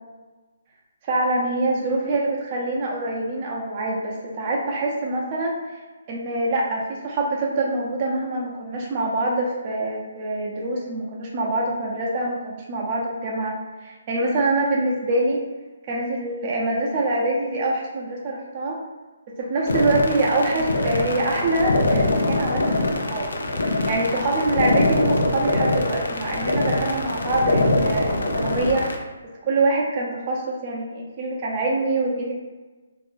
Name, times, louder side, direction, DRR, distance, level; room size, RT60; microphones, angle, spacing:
voice 1, 1.1-5.8 6.1-13.5 13.8-15.4 15.9-18.8 19.3-23.3 23.9-29.1 29.4-32.3, right 2 dB, 30° right, -3 dB, 0.5 m, -25 dB
sound 1, 19.7-29.0, left 2 dB, 85° left, 0.4 m, -23 dB
2.5 x 2.0 x 3.4 m, 1.3 s
hypercardioid pair, 155°, 0 cm